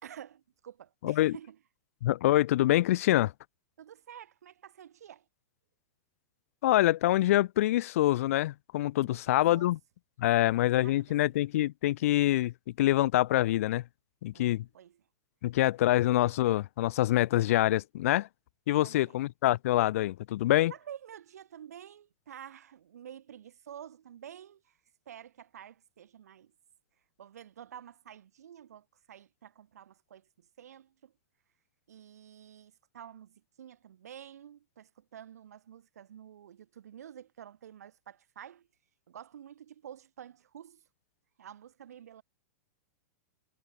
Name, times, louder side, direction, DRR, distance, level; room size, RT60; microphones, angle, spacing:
voice 1, 0.0-1.6 3.8-5.2 9.0-9.7 10.4-11.1 14.3-15.0 18.8-19.2 20.7-24.8 25.1-26.5 27.2-31.1 31.9-38.7 39.1-40.8 41.4-42.2, right 9 dB, 80° right, 4.7 m, -50 dB
voice 2, 1.0-1.4 2.0-3.3 6.6-9.8 10.2-13.8 14.2-14.7 15.4-18.3 18.7-20.7, left 15 dB, 60° left, 0.8 m, -25 dB
hypercardioid pair, 135°, 8 cm